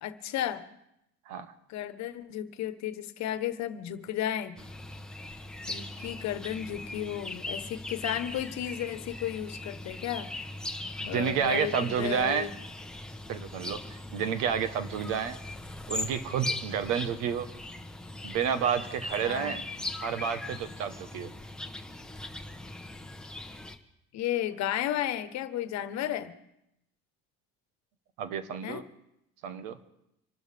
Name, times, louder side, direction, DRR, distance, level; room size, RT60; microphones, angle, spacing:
voice 1, 0.0-0.6 1.7-4.6 5.7-10.3 11.1-12.5 19.2-19.6 24.1-26.3 28.6-28.8, left 11 dB, 65° left, 11 dB, 1.2 m, -33 dB
sound 1, 4.6-23.8, left 2 dB, ahead, 1.1 m, -40 dB
voice 2, 11.0-12.5 13.3-15.4 15.9-17.5 18.2-19.6 20.0-21.3 28.2-28.8 29.4-29.8, right 7 dB, 85° right, 10 dB, 1.4 m, -30 dB
26.0 x 12.5 x 3.6 m, 0.81 s
cardioid pair, 110°, 30 cm